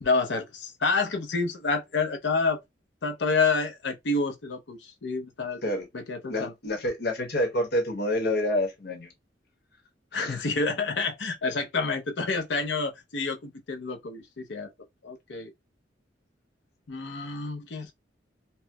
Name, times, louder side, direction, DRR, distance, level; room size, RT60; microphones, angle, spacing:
voice 1, 0.0-2.6 3.0-5.6 5.9-6.5 10.1-14.7 15.0-15.5 16.9-17.9, left 4 dB, 75° left, 0.6 m, -28 dB
voice 2, 6.3-9.1 10.1-10.5, left 1 dB, 60° left, 1.0 m, -28 dB
4.3 x 2.0 x 2.2 m
head